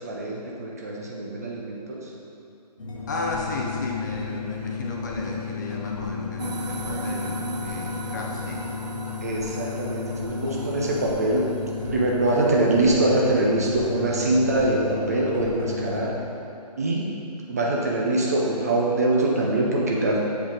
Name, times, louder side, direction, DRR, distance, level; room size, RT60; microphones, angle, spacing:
voice 1, 0.0-2.0 9.2-11.5 11.9-16.1 16.8-17.1 17.5-20.2, right 2 dB, 25° right, -3 dB, 0.5 m, -23 dB
sound 1, 2.8-16.1, left 6 dB, 55° left, 1.2 m, -33 dB
voice 2, 3.1-8.6, left 2 dB, 25° left, -1 dB, 0.7 m, -33 dB
sound 2, 6.4-14.0, right 3 dB, 80° right, 0.7 m, -37 dB
7.1 x 5.0 x 4.6 m, 2.6 s
figure-of-eight pair, 150°, 21 cm